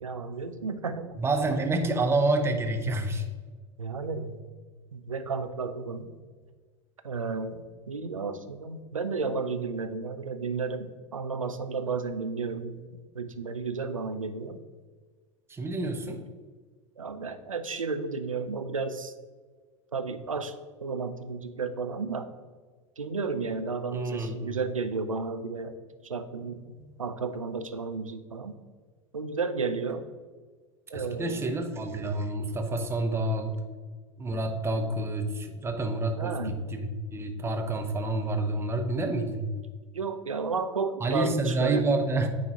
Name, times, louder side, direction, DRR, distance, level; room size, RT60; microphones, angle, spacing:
voice 1, 0.0-1.1 3.8-4.4 4.9-6.1 7.0-14.6 17.0-19.1 19.9-20.5 20.8-22.3 23.0-25.7 26.0-26.6 27.0-28.5 29.1-30.0 30.9-31.4 36.2-36.5 39.9-42.1, right 4 dB, 85° right, 9 dB, 0.5 m, -32 dB
voice 2, 1.2-3.2 15.5-16.3 23.9-24.5 30.9-33.6 34.2-39.5 41.0-42.3, right 2 dB, 15° right, 5 dB, 0.7 m, -28 dB
9.2 x 3.9 x 2.8 m, 1.5 s
figure-of-eight pair, 80°, 17 cm